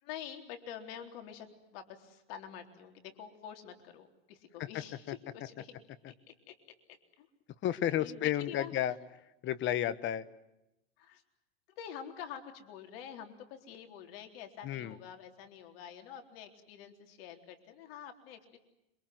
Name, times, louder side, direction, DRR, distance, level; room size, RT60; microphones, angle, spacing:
voice 1, 0.0-5.7 6.1-6.6 7.2-7.3 8.0-8.7 11.0-11.2 11.8-18.6, left 9 dB, 60° left, 5 dB, 3.9 m, -47 dB
voice 2, 7.6-8.9 9.4-10.3 14.6-14.9, left 11 dB, 35° left, 14 dB, 1.4 m, -31 dB
27.0 x 25.5 x 7.8 m, 0.89 s
supercardioid pair, 125°, 33 cm